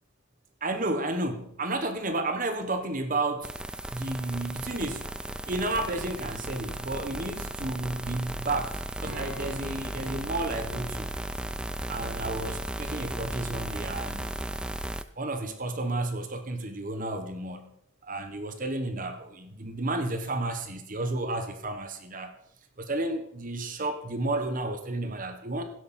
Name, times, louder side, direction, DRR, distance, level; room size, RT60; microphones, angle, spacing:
voice 1, 0.6-3.5 3.9-5.1 5.5-8.7 9.0-11.1 11.9-14.3 15.2-17.8 18.1-22.4 22.8-25.6, right 2 dB, 40° right, 7 dB, 1.2 m, -32 dB
sound 1, 3.4-15.0, right 1 dB, 5° right, 0.4 m, -35 dB
Strum, 9.0-14.4, left 1 dB, 60° right, 2.7 m, -49 dB
16.0 x 8.3 x 4.3 m, 0.71 s
head